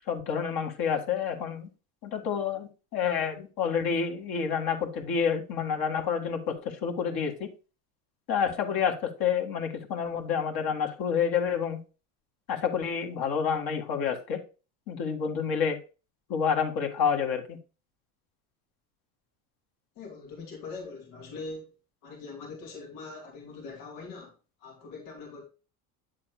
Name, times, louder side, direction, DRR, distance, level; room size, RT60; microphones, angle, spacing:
voice 1, 0.1-1.7 2.0-7.5 8.3-11.8 12.5-14.4 14.9-15.8 16.3-17.6, left 7 dB, 55° left, 2.1 m, -29 dB
voice 2, 20.0-21.7 22.0-25.5, left 3 dB, 85° left, 3.0 m, -42 dB
9.3 x 7.4 x 2.3 m
supercardioid pair, 105°, 43 cm